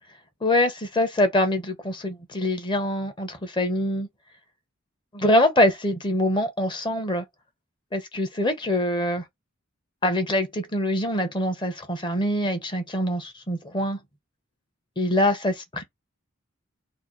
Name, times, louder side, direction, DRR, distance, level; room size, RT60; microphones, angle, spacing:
voice 1, 0.4-4.1 5.1-7.2 7.9-9.2 10.0-14.0 15.0-15.5, left 1 dB, 25° left, 0.7 m, -24 dB
2.8 x 2.5 x 3.7 m
head